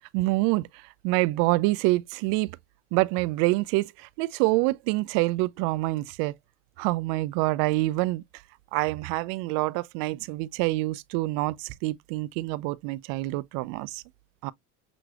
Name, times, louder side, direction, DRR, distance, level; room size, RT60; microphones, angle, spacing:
voice 1, 0.1-2.5 2.9-6.3 6.8-8.2 8.7-14.0 14.4-14.5, right 20 dB, 60° right, 0.5 m, -26 dB
6.1 x 3.0 x 2.4 m
hypercardioid pair, 85°, 40 cm